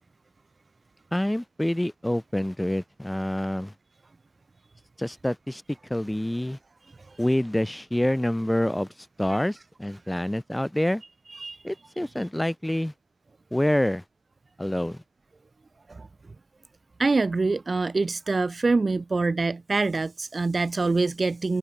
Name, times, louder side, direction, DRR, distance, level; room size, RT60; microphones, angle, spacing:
voice 1, 1.1-3.7 5.0-6.6 7.2-8.9 9.2-11.0 11.6-12.9 13.5-14.0 14.6-15.0, left 1 dB, 5° left, 1.9 m, -27 dB
voice 2, 11.3-11.6 15.9-16.1 17.0-21.6, right 3 dB, 20° right, 1.1 m, -25 dB
hypercardioid pair, 60°, 0 cm